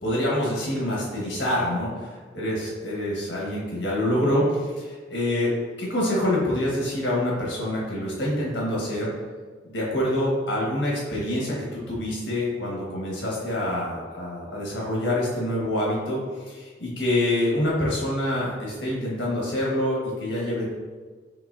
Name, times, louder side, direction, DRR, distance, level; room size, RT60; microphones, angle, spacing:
voice 1, 0.0-5.5 5.8-9.1 9.6-20.7, left 1 dB, 80° left, -4 dB, 1.4 m, -26 dB
5.7 x 2.9 x 2.7 m, 1.5 s
head